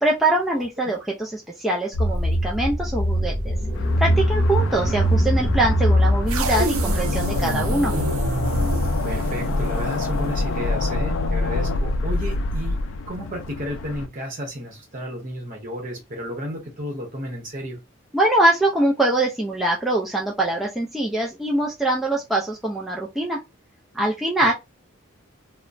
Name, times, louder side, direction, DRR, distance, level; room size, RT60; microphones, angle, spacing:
voice 1, 0.0-3.6 4.0-7.9 18.1-23.4 23.9-24.5, right 1 dB, ahead, 0.3 m, -23 dB
Car / Engine, 1.9-9.0, equal, 30° left, 0.9 m, -23 dB
sound 1, 3.7-14.1, left 2 dB, 70° left, 0.4 m, -27 dB
sound 2, 6.3-10.6, right 3 dB, 85° right, 0.5 m, -29 dB
voice 2, 9.0-17.8 24.4-24.5, equal, 40° right, 1.0 m, -32 dB
2.9 x 2.1 x 2.4 m
head